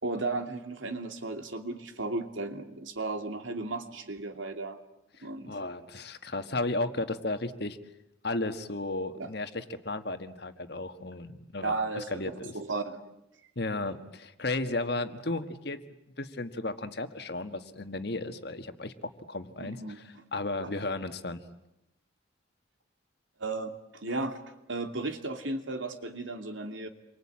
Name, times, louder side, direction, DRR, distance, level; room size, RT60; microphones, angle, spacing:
voice 1, 0.0-4.8 5.2-5.6 9.2-9.3 11.6-13.0 19.6-20.0 23.4-26.9, right 3 dB, 80° right, 6 dB, 2.6 m, -35 dB
voice 2, 5.2-7.8 8.2-12.5 13.5-15.8 16.2-21.4, left 2 dB, 55° left, 9 dB, 1.6 m, -34 dB
28.0 x 24.0 x 8.7 m, 0.88 s
head